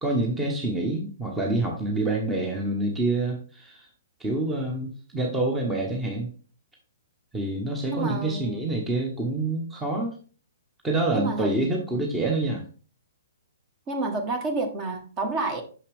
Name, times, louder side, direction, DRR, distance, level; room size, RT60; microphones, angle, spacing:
voice 1, 0.0-3.9 4.2-6.3 7.3-10.1 10.8-12.6, right 2 dB, 10° right, 0 dB, 1.0 m, -27 dB
voice 2, 7.9-8.7 11.1-11.5 13.9-15.6, right 2 dB, 30° right, 5 dB, 1.3 m, -29 dB
6.1 x 5.6 x 3.5 m, 0.39 s
figure-of-eight pair, 125°, 0 cm